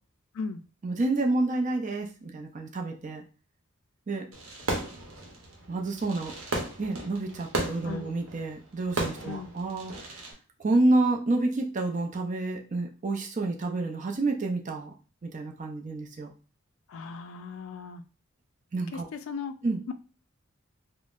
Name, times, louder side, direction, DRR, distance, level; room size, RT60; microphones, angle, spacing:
voice 1, 0.8-3.2 4.1-4.3 5.7-6.3 6.8-10.1 10.6-14.9 15.2-16.3 18.7-19.1 19.6-19.8, right 2 dB, 35° right, 2 dB, 0.5 m, -29 dB
Fireworks, 4.3-10.3, right 2 dB, 75° right, 0.8 m, -35 dB
voice 2, 16.9-18.0 18.9-19.5 19.9-20.0, left 5 dB, 70° left, 10 dB, 0.3 m, -37 dB
3.8 x 2.0 x 2.4 m, 0.37 s
head